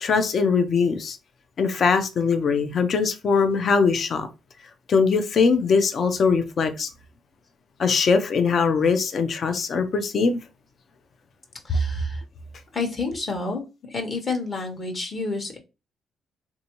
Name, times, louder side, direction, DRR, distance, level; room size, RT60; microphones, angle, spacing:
voice 1, 0.0-1.2 1.6-4.3 4.9-6.9 7.8-10.4, left 5 dB, 55° left, 0.5 m, -21 dB
voice 2, 11.6-12.2 12.7-15.6, left 3 dB, 40° left, 1.1 m, -30 dB
3.5 x 2.6 x 3.0 m
cardioid pair, 90°, 0 cm